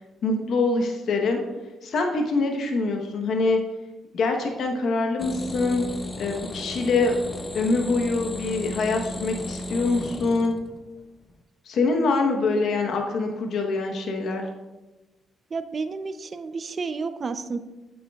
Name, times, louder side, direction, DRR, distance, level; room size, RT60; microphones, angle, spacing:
voice 1, 0.2-1.4 1.8-3.6 4.1-5.8 6.2-7.1 7.5-10.5 11.7-14.4, left 3 dB, 65° left, 3 dB, 0.9 m, -24 dB
sound 1, 5.2-11.0 11.3-11.4, left 1 dB, 25° left, 0.5 m, -35 dB
voice 2, 15.5-17.6, right 4 dB, 40° right, 11 dB, 0.5 m, -31 dB
8.6 x 8.2 x 2.3 m, 1.1 s
cardioid pair, 90°, 0 cm